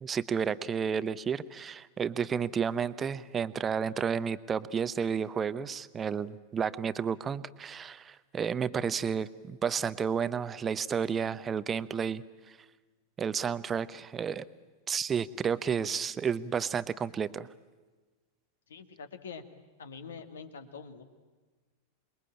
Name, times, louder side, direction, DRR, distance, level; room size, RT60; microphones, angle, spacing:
voice 1, 0.0-12.6 13.2-14.4 14.9-17.5, right 7 dB, 20° right, 15 dB, 0.8 m, -31 dB
voice 2, 18.7-19.4 19.8-21.0, left 5 dB, 65° left, 9 dB, 1.9 m, -45 dB
27.5 x 22.0 x 8.8 m, 1.3 s
figure-of-eight pair, 90°, 0 cm